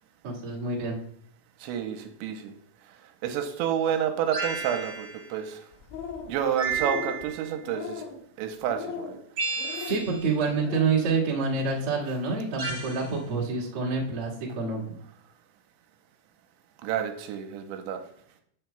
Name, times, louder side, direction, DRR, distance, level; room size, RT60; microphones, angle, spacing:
voice 1, 0.2-1.0 9.8-14.9, right 4 dB, 50° right, -4 dB, 1.7 m, -27 dB
voice 2, 1.6-2.5 3.2-5.6 6.3-8.0 8.4-9.2 9.5-9.9 16.8-18.0, right 9 dB, 85° right, 5 dB, 2.9 m, -30 dB
sound 1, 4.3-5.3 6.6-7.5 9.4-10.3 12.6-13.1, right 4 dB, 25° right, 3.0 m, -32 dB
sound 2, 5.7-6.4 6.7-7.2 7.6-8.2 8.7-9.2 9.6-10.0 10.5-10.9, left 7 dB, 75° left, 3.5 m, -38 dB
10.5 x 9.3 x 2.3 m, 0.66 s
omnidirectional pair, 5.4 m